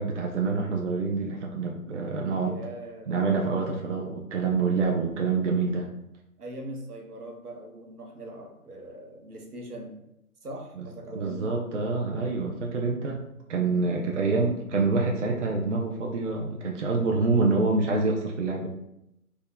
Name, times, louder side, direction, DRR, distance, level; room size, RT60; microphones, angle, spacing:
voice 1, 0.0-2.6 3.1-5.9 10.8-10.9 11.1-13.2 13.5-18.7, right 3 dB, 55° right, 0 dB, 0.5 m, -26 dB
voice 2, 2.4-3.1 6.4-10.0 10.4-11.6 13.9-14.2, right 1 dB, 85° right, 1 dB, 0.9 m, -41 dB
2.7 x 2.2 x 3.8 m, 0.84 s
figure-of-eight pair, 160°, 45 cm